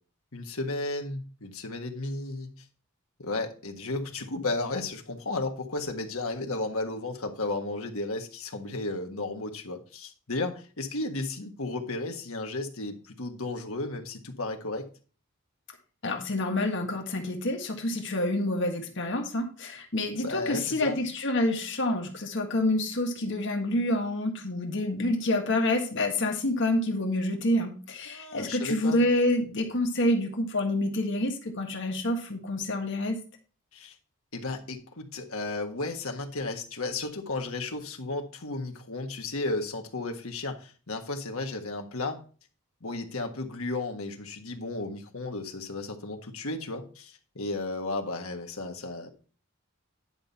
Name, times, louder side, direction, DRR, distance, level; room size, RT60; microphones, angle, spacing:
voice 1, 0.3-2.5 3.2-14.8 20.2-21.0 28.1-29.0 33.7-33.9 34.3-42.2 42.8-49.1, left 2 dB, 80° left, 4 dB, 1.6 m, -34 dB
voice 2, 16.0-33.2, left 1 dB, 60° left, 3 dB, 1.7 m, -28 dB
10.5 x 5.6 x 4.3 m, 0.37 s
head